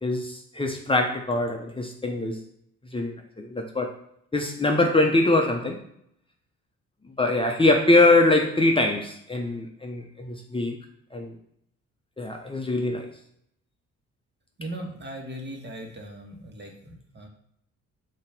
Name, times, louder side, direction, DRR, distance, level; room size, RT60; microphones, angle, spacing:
voice 1, 0.0-2.4 2.9-3.9 4.3-5.8 7.2-10.8 11.1-11.4 12.2-13.1, left 2 dB, 15° left, 2 dB, 0.8 m, -23 dB
voice 2, 14.6-17.3, right 1 dB, 35° right, 2 dB, 1.6 m, -38 dB
7.2 x 3.0 x 5.9 m, 0.72 s
cardioid pair, 90°, 30 cm